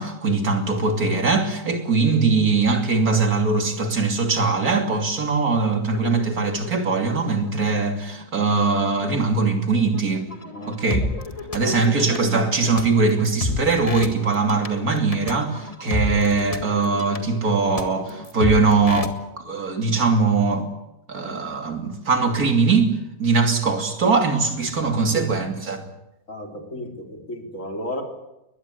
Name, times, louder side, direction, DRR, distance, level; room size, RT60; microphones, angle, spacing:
voice 1, 0.0-10.3 10.6-11.0 11.5-20.7 21.1-22.9 23.2-25.8, right 4 dB, 80° right, 3.3 m, -21 dB
sound 1, 3.7-3.8 4.0-4.5 4.8-19.1, left 2 dB, 25° left, 1.8 m, -33 dB
voice 2, 10.5-10.9 11.6-12.0 25.1-25.3 26.3-28.0, left 1 dB, 55° left, 4.3 m, -34 dB
22.0 x 21.0 x 8.3 m
omnidirectional pair, 1.6 m